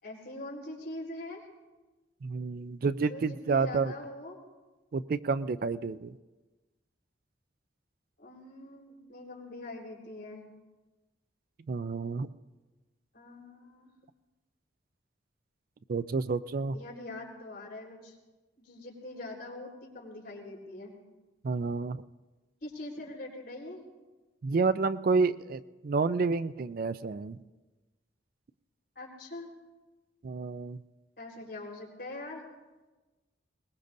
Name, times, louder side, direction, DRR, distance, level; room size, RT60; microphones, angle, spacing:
voice 1, 0.0-1.4 3.0-4.4 8.2-10.4 13.1-13.9 16.7-18.2 18.6-20.9 22.6-23.9 29.0-29.5 31.2-32.4, left 2 dB, 55° left, -3 dB, 4.1 m, -43 dB
voice 2, 2.2-3.9 4.9-6.1 11.7-12.3 15.9-16.8 21.4-22.0 24.4-27.4 30.2-30.8, right 4 dB, 50° right, 14 dB, 0.4 m, -29 dB
22.0 x 20.0 x 2.6 m, 1.2 s
head